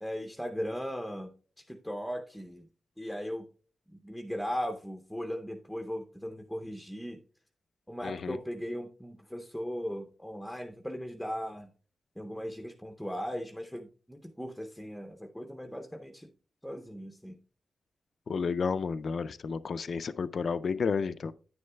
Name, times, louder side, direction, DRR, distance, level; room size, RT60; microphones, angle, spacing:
voice 1, 0.0-1.3 1.6-2.6 3.0-3.5 4.0-7.2 7.9-11.7 12.2-16.3 16.6-17.4, equal, ahead, 0.6 m, -38 dB
voice 2, 8.0-8.4 18.3-21.3, left 5 dB, 60° left, 0.3 m, -31 dB
9.6 x 9.4 x 2.2 m
wide cardioid pair, 115°, 0 cm